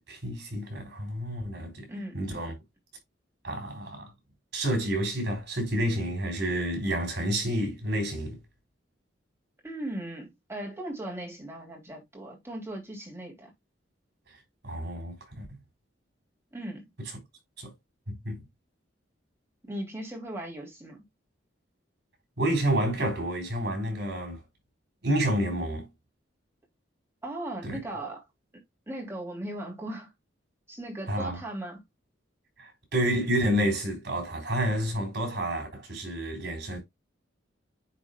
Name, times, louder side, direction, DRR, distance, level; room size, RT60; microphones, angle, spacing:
voice 1, 0.1-1.9 2.1-2.6 3.4-4.1 4.5-8.4 14.6-15.6 17.6-17.7 18.1-18.4 22.4-24.4 25.0-25.9 27.6-27.8 31.1-31.4 32.6-36.8, right 1 dB, 60° right, 4.0 m, -29 dB
voice 2, 1.9-2.2 9.6-13.5 16.5-16.9 19.6-21.0 27.2-28.2 28.9-30.1 30.7-31.8, right 1 dB, 15° right, 2.9 m, -38 dB
10.0 x 4.0 x 2.4 m
head